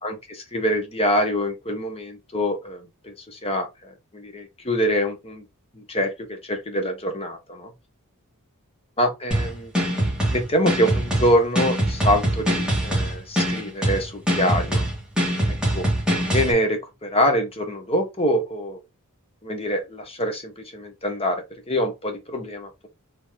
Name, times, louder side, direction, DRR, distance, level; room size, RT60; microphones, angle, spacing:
voice 1, 0.0-5.4 5.7-7.7 9.0-9.7 10.3-14.8 15.5-18.8 19.4-22.9, equal, 25° left, 1.2 m, -25 dB
sound 1, 9.3-16.5, equal, 5° right, 1.9 m, -23 dB
4.7 x 3.1 x 3.6 m
head